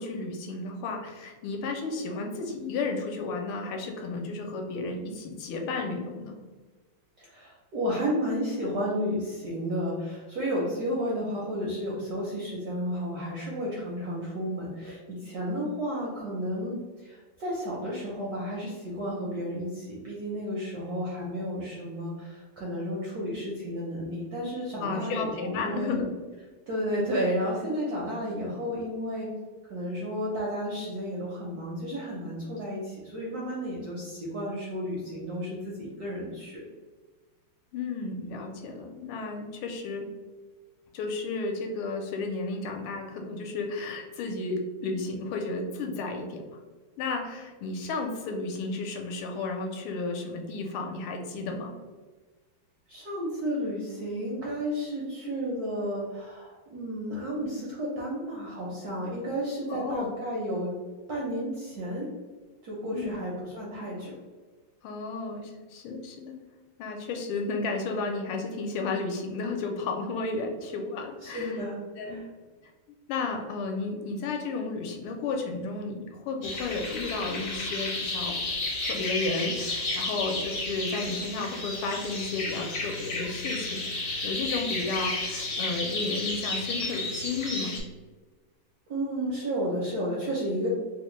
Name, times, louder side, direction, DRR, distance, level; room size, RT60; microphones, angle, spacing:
voice 1, 0.0-6.4 24.8-26.1 37.7-40.1 40.9-46.4 47.0-51.7 59.7-60.1 62.9-63.2 64.8-66.3 66.8-71.6 72.0-72.2 73.1-78.4 78.8-87.8, left 3 dB, 80° left, 2 dB, 1.4 m, -33 dB
voice 2, 7.2-26.0 26.7-29.3 29.7-36.6 52.9-60.7 61.1-62.1 62.6-64.2 71.2-72.3 88.9-90.7, equal, 70° right, -4 dB, 0.9 m, -32 dB
sound 1, 76.4-87.8, left 2 dB, 55° left, 0.9 m, -32 dB
3.5 x 2.1 x 3.0 m, 1.3 s
omnidirectional pair, 2.3 m